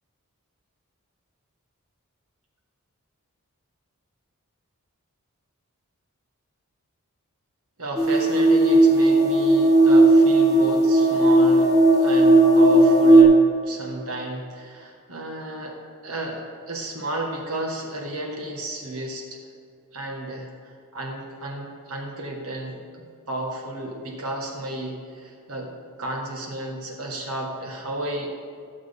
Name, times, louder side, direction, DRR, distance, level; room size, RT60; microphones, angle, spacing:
voice 1, 7.8-15.8 16.0-19.4 19.9-25.7 26.0-28.3, right 1 dB, 70° right, 0 dB, 1.7 m, -33 dB
sound 1, 8.0-13.2, right 1 dB, 15° right, 1.5 m, -16 dB
16.0 x 6.4 x 3.7 m, 2.1 s
head